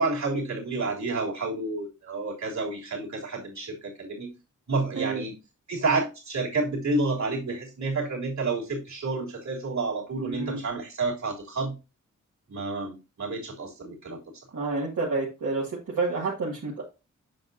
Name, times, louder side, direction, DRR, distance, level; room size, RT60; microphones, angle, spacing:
voice 1, 0.0-4.3 4.7-5.3 5.7-11.7 12.5-14.2, right 3 dB, 65° right, -2 dB, 3.3 m, -29 dB
voice 2, 10.2-10.6 14.5-15.6 16.0-16.8, right 3 dB, 80° right, -5 dB, 2.1 m, -29 dB
7.8 x 6.0 x 2.7 m, 0.28 s
cardioid pair, 60°, 31 cm